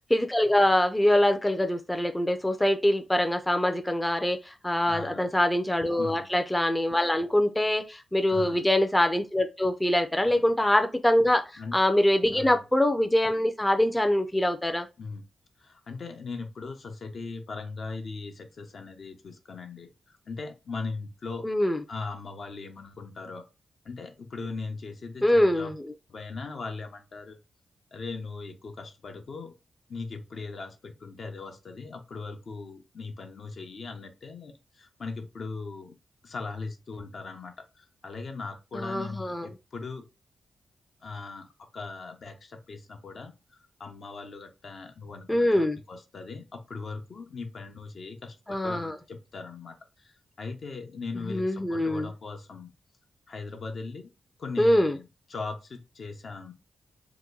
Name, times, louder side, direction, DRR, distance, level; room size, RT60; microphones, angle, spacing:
voice 1, 0.1-11.4 11.7-14.9 21.4-21.8 25.2-25.7 38.7-39.5 45.3-45.8 48.5-49.0 51.3-52.1 54.6-54.9, left 1 dB, 15° left, 0.4 m, -24 dB
voice 2, 4.9-5.3 6.0-6.2 8.3-8.7 10.2-10.5 11.6-11.8 12.3-12.6 15.0-15.2 15.6-21.5 21.9-23.5 23.8-25.7 26.1-27.4 27.9-29.5 29.9-36.0 36.2-40.1 41.0-52.7 53.3-54.1 54.4-56.5, left 4 dB, 65° left, 0.7 m, -39 dB
2.9 x 2.2 x 3.7 m
cardioid pair, 60°, 0 cm